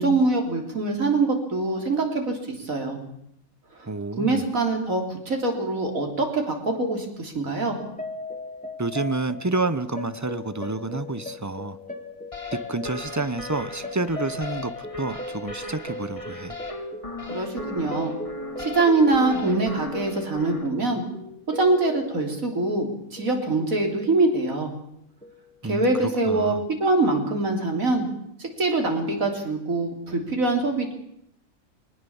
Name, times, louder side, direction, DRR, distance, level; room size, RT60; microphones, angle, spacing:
voice 1, 0.0-3.0 4.2-7.8 17.3-18.1 18.6-21.0 21.5-24.7 25.6-26.5 26.8-28.1 28.4-30.9, right 2 dB, 70° right, 3 dB, 3.8 m, -24 dB
voice 2, 3.9-4.4 8.8-11.8 12.5-14.7 15.0-16.6 25.6-26.6, right 3 dB, 15° right, 13 dB, 0.7 m, -29 dB
sound 1, 7.8-22.6 23.2-23.8 24.0-24.2 25.2-25.4, left 2 dB, 5° left, 2.0 m, -38 dB
sound 2, 12.3-20.7, left 2 dB, 25° left, 2.3 m, -37 dB
21.5 x 19.0 x 7.1 m, 0.75 s
omnidirectional pair, 1.5 m